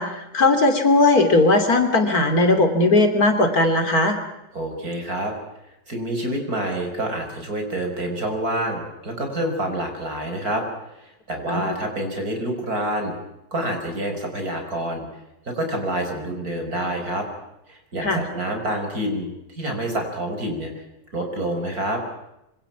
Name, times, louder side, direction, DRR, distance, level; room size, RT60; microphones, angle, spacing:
voice 1, 0.0-4.2 11.5-11.7 18.0-18.2, left 2 dB, 60° left, 7 dB, 3.4 m, -18 dB
voice 2, 4.5-5.3 5.9-10.6 11.0-13.1 13.5-15.1 15.4-17.3 17.7-20.7 21.1-22.0, right 1 dB, 55° right, 4 dB, 6.1 m, -27 dB
26.0 x 25.0 x 6.0 m, 0.90 s
omnidirectional pair, 1.8 m